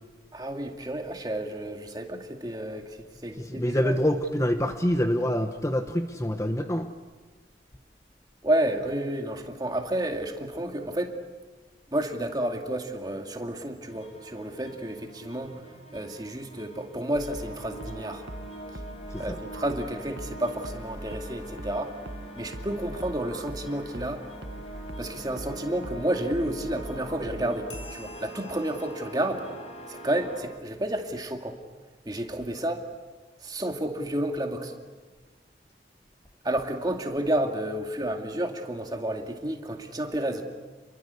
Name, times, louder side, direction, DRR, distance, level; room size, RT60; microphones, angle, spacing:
voice 1, 0.3-4.0 8.4-11.1 11.9-15.7 15.9-18.3 18.7-18.8 19.2-22.0 22.4-24.2 25.0-29.5 29.9-31.6 32.1-32.9 33.4-34.7 36.4-40.4, right 1 dB, 20° right, 4 dB, 2.3 m, -31 dB
voice 2, 3.4-6.9 19.1-19.4, equal, 15° left, 7 dB, 1.0 m, -26 dB
sound 1, 13.8-30.4, right 1 dB, 35° left, 4.6 m, -44 dB
sound 2, 17.1-28.2, right 1 dB, 80° right, 1.5 m, -42 dB
sound 3, 27.7-30.7, left 2 dB, 80° left, 4.5 m, -51 dB
29.5 x 22.5 x 8.3 m, 1.3 s
head